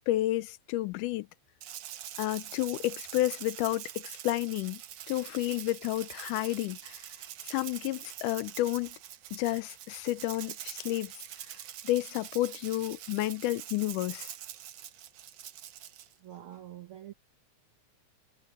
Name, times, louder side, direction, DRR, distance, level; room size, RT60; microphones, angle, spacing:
voice 1, 0.1-1.3 2.2-4.8 5.1-7.0 7.5-9.0 9.3-11.1 11.8-14.3, left 16 dB, 80° left, 2.1 m, -31 dB
Rattle (instrument), 1.6-16.1, right 11 dB, 65° right, 1.8 m, -44 dB
voice 2, 16.2-17.1, right 12 dB, 85° right, 1.1 m, -45 dB
omnidirectional pair, 3.7 m